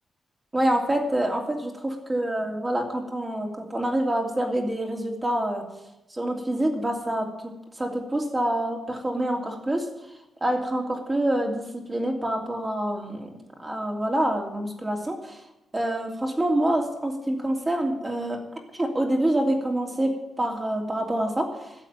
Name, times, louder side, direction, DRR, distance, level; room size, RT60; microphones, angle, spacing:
voice 1, 0.5-5.6 6.1-7.3 7.8-9.9 10.4-13.3 13.6-15.4 15.7-18.4 18.7-21.8, right 1 dB, 20° right, 1 dB, 2.8 m, -26 dB
12.5 x 7.9 x 9.2 m, 0.94 s
cardioid pair, 110°, 0 cm